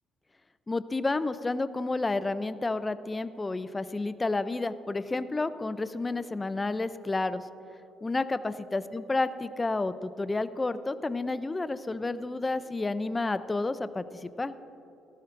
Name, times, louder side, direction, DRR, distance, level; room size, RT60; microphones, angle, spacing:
voice 1, 0.7-7.4 8.0-14.5, left 3 dB, 15° left, 13 dB, 0.3 m, -30 dB
17.0 x 13.5 x 2.5 m, 2.9 s
cardioid pair, 165°, 0 cm